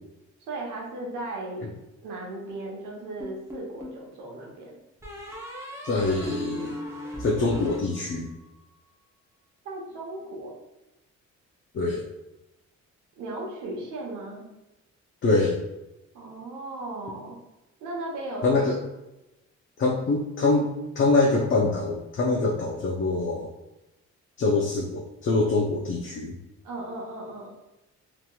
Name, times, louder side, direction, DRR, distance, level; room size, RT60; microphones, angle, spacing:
voice 1, 0.5-1.7 2.0-4.8 9.6-10.6 13.2-14.4 16.1-17.3 17.8-18.6 26.6-27.5, right 2 dB, 90° right, -2 dB, 0.9 m, -36 dB
sound 1, 3.2-4.1 5.0-8.5, left 1 dB, 10° right, 0.7 m, -37 dB
voice 2, 5.8-6.8 7.2-8.3 11.7-12.1 15.2-15.6 18.4-18.8 19.8-23.5 24.4-26.4, left 3 dB, 40° left, -1 dB, 0.5 m, -24 dB
2.9 x 2.9 x 2.2 m, 0.95 s
cardioid pair, 90°, 30 cm